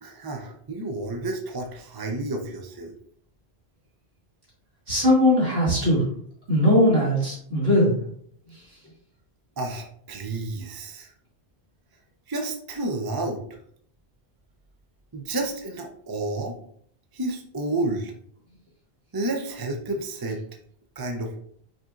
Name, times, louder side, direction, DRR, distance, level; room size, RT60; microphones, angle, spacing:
voice 1, 0.0-2.9 9.6-11.1 12.3-13.4 15.1-16.6 17.1-18.1 19.1-20.4 21.0-21.4, right 2 dB, 30° right, 3 dB, 0.4 m, -30 dB
voice 2, 4.9-6.0 6.5-8.0, left 1 dB, 60° right, -7 dB, 2.4 m, -19 dB
5.1 x 4.2 x 2.4 m, 0.63 s
omnidirectional pair, 1.1 m